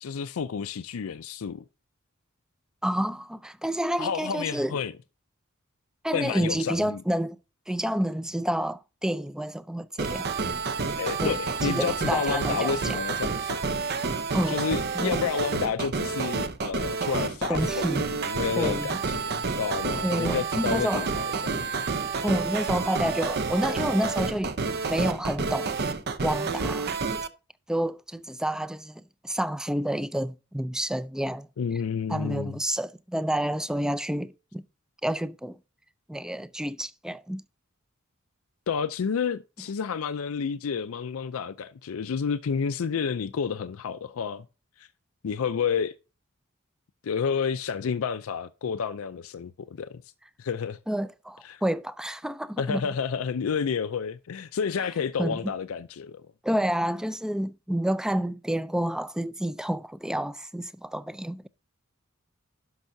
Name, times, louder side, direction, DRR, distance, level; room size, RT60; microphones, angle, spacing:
voice 1, 0.0-1.6 4.0-4.9 6.1-7.0 11.0-13.6 14.5-21.7 31.6-32.6 38.7-44.4 44.8-44.9 45.2-46.0 47.0-50.0 50.4-50.8 51.4-51.6 52.6-56.2, left 6 dB, 90° left, 0.4 m, -30 dB
voice 2, 2.8-4.8 6.0-7.4 7.7-10.3 11.2-11.4 11.6-13.0 14.3-14.6 14.9-15.2 17.5-18.1 18.6-19.0 20.0-21.1 22.2-24.6 24.9-25.7 26.2-27.0 27.7-31.5 32.1-34.7 35.0-35.6 36.1-37.4 50.9-52.8 55.2-55.5 56.4-61.5, right 1 dB, 5° right, 0.4 m, -29 dB
sound 1, 10.0-27.3, right 4 dB, 50° right, 0.7 m, -29 dB
12.0 x 5.5 x 2.6 m
head